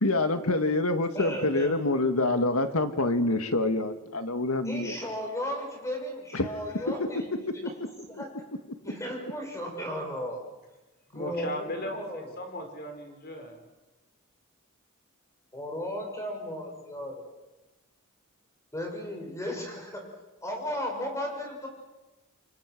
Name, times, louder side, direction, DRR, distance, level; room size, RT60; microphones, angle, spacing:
voice 1, 0.0-5.1 6.3-6.5, left 2 dB, 80° left, 8 dB, 1.9 m, -26 dB
voice 2, 1.1-1.8 4.6-7.6 8.0-8.3 8.8-10.4 11.1-12.3 15.5-17.2 18.7-20.0 20.4-21.7, equal, 15° left, 1 dB, 6.5 m, -35 dB
voice 3, 11.1-13.6, left 1 dB, 50° left, 5 dB, 4.6 m, -37 dB
28.0 x 24.0 x 6.2 m, 1.1 s
head